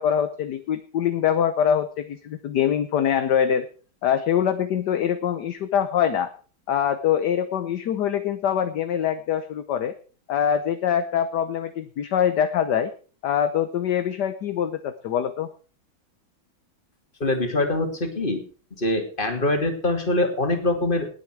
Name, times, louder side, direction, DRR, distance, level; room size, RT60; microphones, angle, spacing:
voice 1, 0.0-3.7 4.0-6.3 6.7-9.9 10.3-12.9 13.2-15.5, left 9 dB, 60° left, 10 dB, 1.4 m, -24 dB
voice 2, 17.2-18.4 18.8-21.1, left 1 dB, 25° left, 4 dB, 2.8 m, -24 dB
19.0 x 8.3 x 4.7 m, 0.39 s
omnidirectional pair, 2.2 m